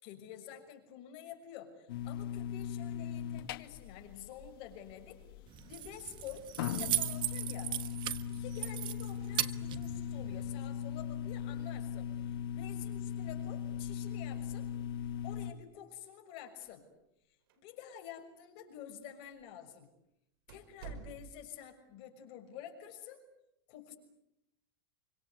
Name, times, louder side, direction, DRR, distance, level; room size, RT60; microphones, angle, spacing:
voice 1, 0.0-5.2 5.7-7.7 8.3-12.1 12.5-14.7 15.2-16.9 17.6-19.9 20.5-23.2 23.7-24.0, left 9 dB, 50° left, 4 dB, 6.2 m, -49 dB
sound 1, 1.9-15.5, left 9 dB, 70° left, 1.9 m, -39 dB
Keys jangling, 5.5-10.5, right 14 dB, 40° right, 1.4 m, -38 dB
sound 2, 16.5-17.2 17.5-17.6 18.4-18.5 19.2-19.4 19.8-19.9 20.5-21.6, right 6 dB, 70° right, 5.1 m, -49 dB
27.5 x 25.5 x 8.1 m, 0.82 s
supercardioid pair, 125°, 12 cm